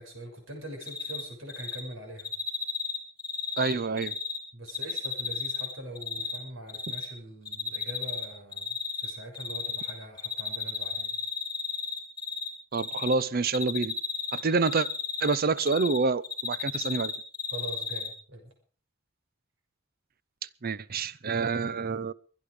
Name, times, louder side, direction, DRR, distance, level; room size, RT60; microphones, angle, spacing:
voice 1, 0.0-2.3 4.5-11.2 17.5-18.5, right 1 dB, 65° right, 6.6 m, -43 dB
Cricket, 0.8-1.2 1.5-1.8 2.2-4.4 4.7-6.4 6.7-7.1 7.5-8.3 8.5-9.9 10.2-12.5 12.7-13.1 13.5-16.0 16.2-18.1, left 5 dB, 20° left, 3.4 m, -33 dB
voice 2, 3.6-4.2 12.7-14.0 14.3-14.9 15.2-17.1 20.6-22.1, right 4 dB, 45° right, 0.7 m, -27 dB
23.5 x 10.5 x 4.9 m
head